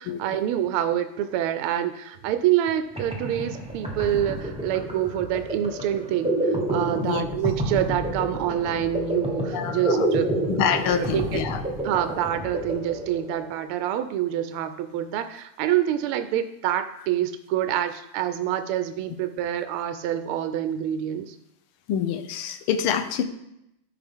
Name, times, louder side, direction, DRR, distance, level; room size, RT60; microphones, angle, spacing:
voice 1, 0.0-10.3 10.9-11.4 11.8-21.3, right 11 dB, 80° right, 9 dB, 1.5 m, -26 dB
sound 1, 2.7-2.8 2.9-13.6, right 1 dB, 5° right, 0.5 m, -29 dB
voice 2, 9.5-10.1 10.5-11.6 21.9-23.2, left 8 dB, 75° left, 9 dB, 1.6 m, -26 dB
14.0 x 5.1 x 3.5 m, 0.83 s
omnidirectional pair, 2.4 m